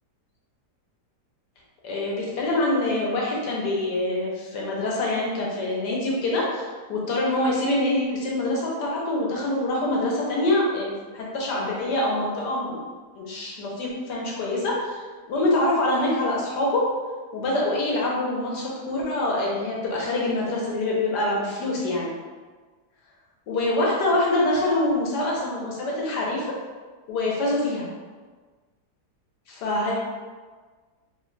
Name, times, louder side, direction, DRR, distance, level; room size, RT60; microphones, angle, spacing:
voice 1, 1.8-12.8 13.2-15.0 15.3-16.9 17.3-22.1 23.5-26.4 27.1-27.9 29.5-29.9, left 1 dB, 75° left, -3 dB, 1.4 m, -25 dB
3.2 x 2.2 x 3.8 m, 1.4 s
omnidirectional pair, 1.8 m